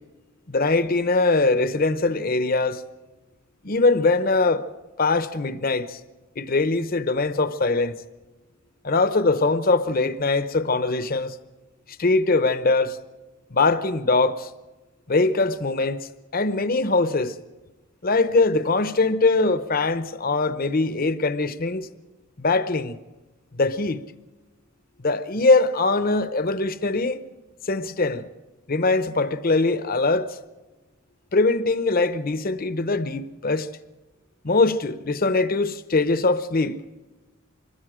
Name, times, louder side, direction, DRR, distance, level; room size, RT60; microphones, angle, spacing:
voice 1, 0.5-2.8 3.6-4.6 5.0-6.0 6.4-8.0 8.8-11.4 12.0-13.0 13.5-14.5 15.1-17.3 18.0-21.9 22.4-23.0 23.5-24.0 25.0-27.2 27.7-28.3 28.7-30.3 31.3-33.7 34.4-36.8, left 3 dB, 45° left, 0.9 m, -22 dB
25.5 x 21.5 x 5.0 m
head